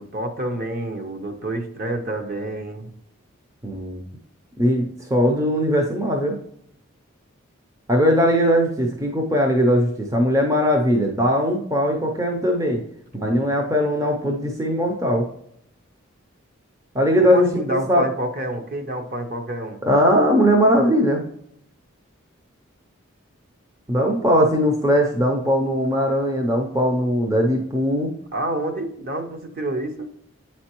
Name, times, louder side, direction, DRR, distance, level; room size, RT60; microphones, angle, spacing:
voice 1, 0.0-2.9 17.2-19.8 28.3-30.1, right 1 dB, 45° right, 5 dB, 0.8 m, -28 dB
voice 2, 3.6-4.0 4.6-6.4 7.9-12.8 13.1-15.3 16.9-18.1 19.9-21.2 23.9-28.1, equal, 15° right, 1 dB, 0.5 m, -20 dB
8.7 x 4.3 x 3.0 m, 0.71 s
head